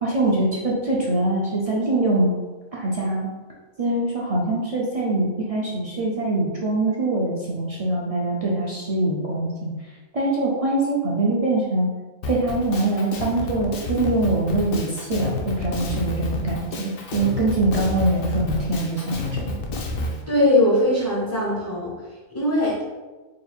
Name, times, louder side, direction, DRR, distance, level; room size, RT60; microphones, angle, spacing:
voice 1, 0.0-2.3 2.7-3.3 3.8-9.7 10.1-11.9 12.3-19.5, right 2 dB, 55° right, -4 dB, 0.4 m, -23 dB
Drum kit, 12.2-20.2, left 2 dB, 75° left, 1.0 m, -29 dB
voice 2, 20.3-21.9 22.3-22.8, left 1 dB, 30° left, -5 dB, 0.4 m, -20 dB
3.7 x 2.3 x 4.3 m, 1.3 s
omnidirectional pair, 1.4 m